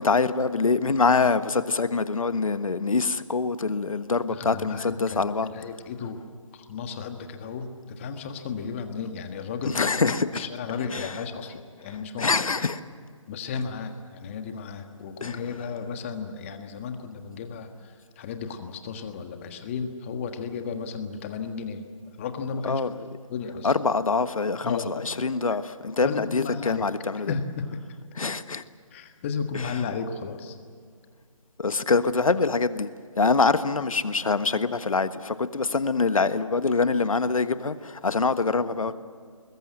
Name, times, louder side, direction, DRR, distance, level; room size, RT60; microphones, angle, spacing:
voice 1, 0.0-5.5 9.6-10.5 10.9-11.1 12.2-12.8 15.2-15.4 22.6-22.9 23.6-27.3 28.2-28.6 29.5-29.7 31.6-32.9 33.2-38.9, left 4 dB, 75° left, 1.3 m, -24 dB
voice 2, 4.3-6.2 6.5-12.4 13.3-21.8 22.2-23.0 23.3-23.7 24.6-24.9 26.0-26.9 27.3-27.6 28.9-30.5 38.9-39.0, left 5 dB, 20° left, 1.5 m, -34 dB
25.0 x 21.0 x 7.8 m
figure-of-eight pair, 160°, 17 cm